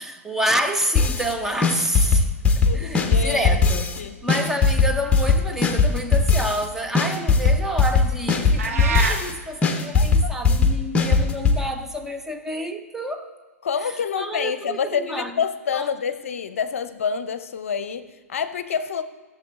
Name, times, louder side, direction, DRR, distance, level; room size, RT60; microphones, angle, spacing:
voice 1, 0.0-2.3 2.6-13.3 13.8-15.3 15.7-15.9, equal, 5° right, 0.7 m, -28 dB
sound 1, 1.0-1.3 1.6-4.0 4.3-6.7 7.0-9.3 9.6-11.6, left 4 dB, 15° left, 1.0 m, -19 dB
voice 2, 2.6-3.6 4.0-4.2 9.9-10.3 13.6-19.0, left 7 dB, 65° left, 0.6 m, -27 dB
sound 2, 8.6-9.2, right 5 dB, 65° right, 1.2 m, -24 dB
15.0 x 6.8 x 3.7 m
figure-of-eight pair, 110°, 8 cm